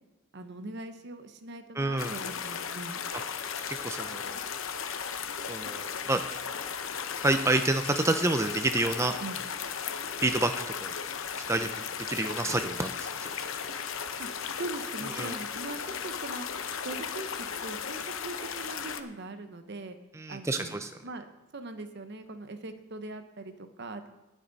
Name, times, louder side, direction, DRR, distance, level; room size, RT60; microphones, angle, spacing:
voice 1, 0.3-3.0 9.2-9.4 14.2-14.3 14.5-16.5 16.8-20.0 20.3-24.1, right 2 dB, 55° right, 8 dB, 1.0 m, -41 dB
voice 2, 1.8-2.2 3.7-4.4 5.5-6.2 7.2-9.2 10.2-10.5 10.8-10.9 11.5-11.7 12.1-13.3 15.2-15.4 20.1-20.9, right 2 dB, 15° right, 7 dB, 0.5 m, -28 dB
sound 1, 2.0-19.0, left 7 dB, 70° left, 0.8 m, -36 dB
19.5 x 7.3 x 4.1 m, 1.0 s
head